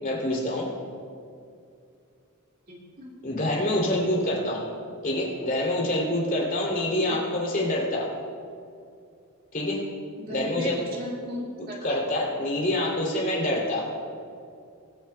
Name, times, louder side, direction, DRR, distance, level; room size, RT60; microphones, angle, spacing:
voice 1, 0.0-0.7 3.2-4.6 5.0-8.1 9.5-9.8 10.3-10.8 11.8-13.9, left 1 dB, 40° left, -3 dB, 3.0 m, -26 dB
voice 2, 2.7-3.1 7.0-7.2 10.2-12.0, equal, 45° right, -3 dB, 2.2 m, -36 dB
22.5 x 9.2 x 2.3 m, 2.4 s
head